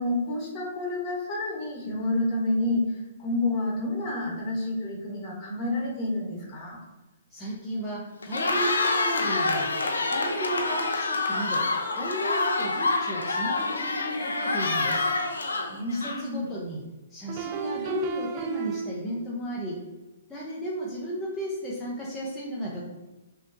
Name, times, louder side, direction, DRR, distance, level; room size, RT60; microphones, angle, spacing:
voice 1, 0.0-6.8 15.7-16.5, left 2 dB, 30° left, -2 dB, 1.1 m, -29 dB
voice 2, 7.3-9.7 10.0-11.7 11.9-15.1 15.9-16.8 17.1-19.8 20.3-22.8, equal, 5° left, -7 dB, 0.6 m, -34 dB
Cheering, 8.2-16.5, left 3 dB, 80° left, 0.4 m, -27 dB
sound 1, 16.0-16.1 17.3-19.3, right 7 dB, 40° right, 0.3 m, -34 dB
3.2 x 2.8 x 2.6 m, 1.1 s
hypercardioid pair, 125°, 0 cm